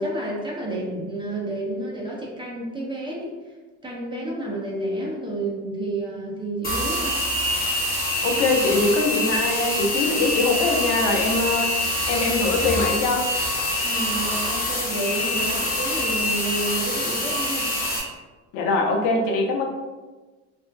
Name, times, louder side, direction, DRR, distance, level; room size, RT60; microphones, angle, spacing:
voice 1, 0.0-3.3 3.8-7.2 13.8-17.7, right 1 dB, 15° right, -3 dB, 0.5 m, -30 dB
sound 1, 6.6-18.0, left 1 dB, 25° left, 0.8 m, -25 dB
voice 2, 8.2-13.3 18.5-19.6, left 3 dB, 75° left, 3 dB, 0.6 m, -23 dB
2.6 x 2.3 x 2.2 m, 1.2 s
cardioid pair, 110°, 32 cm